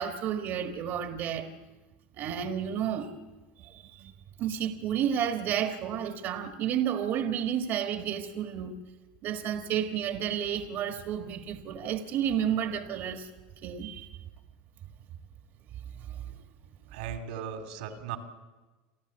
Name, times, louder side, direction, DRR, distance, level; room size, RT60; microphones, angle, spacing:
voice 1, 0.0-1.5 2.1-3.1 3.6-4.1 4.4-8.7 9.2-13.3 13.6-14.1 16.0-16.4, right 9 dB, 50° right, 5 dB, 1.5 m, -31 dB
voice 2, 16.9-18.2, right 8 dB, 85° right, 6 dB, 2.7 m, -37 dB
28.5 x 12.0 x 7.9 m, 1.2 s
supercardioid pair, 125°, 5 cm